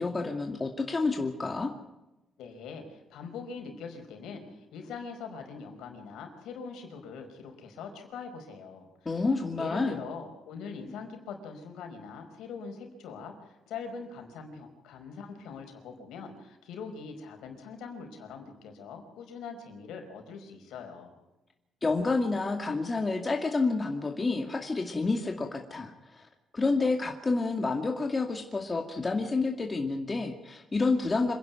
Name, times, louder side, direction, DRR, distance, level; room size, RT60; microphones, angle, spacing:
voice 1, 0.0-1.7 9.1-10.0 21.8-26.3 26.5-31.3, left 3 dB, 25° left, 3 dB, 2.3 m, -29 dB
voice 2, 2.4-9.3 9.6-21.1, left 5 dB, 85° left, 4 dB, 4.9 m, -42 dB
27.0 x 11.0 x 9.3 m, 0.97 s
cardioid pair, 90°, 0 cm